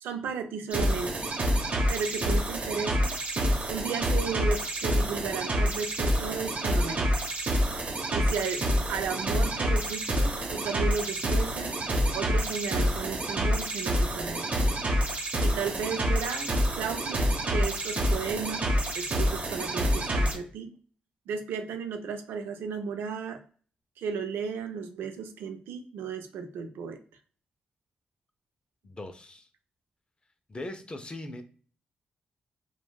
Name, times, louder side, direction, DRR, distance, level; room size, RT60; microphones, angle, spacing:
voice 1, 0.0-1.1 1.9-3.1 3.7-7.2 8.1-8.6 8.9-11.7 12.1-14.5 15.4-20.8 21.3-23.4 24.0-27.0, right 6 dB, 85° right, 0.4 m, -34 dB
sound 1, 0.7-20.3, equal, 40° right, 0.8 m, -27 dB
voice 2, 28.8-29.5 30.5-31.4, left 1 dB, 30° left, 0.5 m, -39 dB
3.1 x 2.2 x 2.3 m
supercardioid pair, 55°, 4 cm